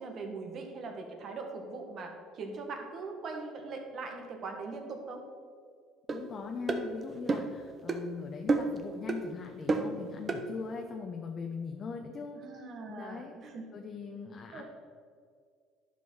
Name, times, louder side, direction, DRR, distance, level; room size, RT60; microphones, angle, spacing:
voice 1, 0.0-5.2 12.3-13.6 14.5-14.6, right 3 dB, 50° right, 3 dB, 1.7 m, -41 dB
voice 2, 6.1-12.6 12.9-13.3 13.7-14.6, left 5 dB, 40° left, 3 dB, 0.9 m, -40 dB
sound 1, 6.1-6.2 6.7-6.8 7.3-7.5 7.9-8.0 8.5-8.8 9.1-9.2 9.7-9.9 10.3-10.4, right 3 dB, 30° right, 0.9 m, -29 dB
11.0 x 5.3 x 5.5 m, 2.1 s
cardioid pair, 105°, 0 cm